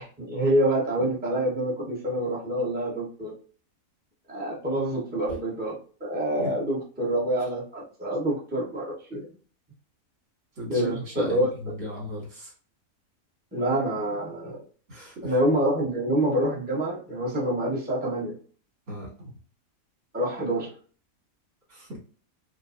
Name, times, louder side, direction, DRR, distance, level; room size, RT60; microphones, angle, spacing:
voice 1, 0.0-3.3 4.3-5.7 6.0-9.3 10.7-11.5 13.5-14.6 15.2-18.3 20.1-20.7, right 1 dB, 10° right, -4 dB, 0.8 m, -26 dB
voice 2, 10.6-12.5 14.9-15.3 18.9-19.3 21.7-22.0, equal, 60° right, -4 dB, 2.3 m, -36 dB
4.9 x 2.2 x 2.5 m, 0.42 s
omnidirectional pair, 1.5 m